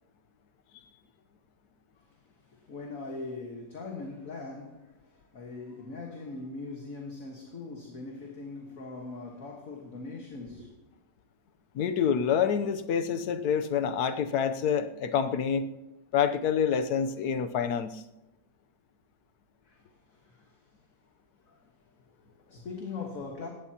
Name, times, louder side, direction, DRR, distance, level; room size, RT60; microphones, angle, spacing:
voice 1, 2.0-10.7 19.6-20.7 21.4-21.7 22.1-23.5, left 3 dB, 50° left, 1.8 m, -41 dB
voice 2, 11.7-15.7 16.1-18.0, left 7 dB, 65° left, 1.2 m, -27 dB
18.5 x 16.0 x 2.9 m
omnidirectional pair, 2.0 m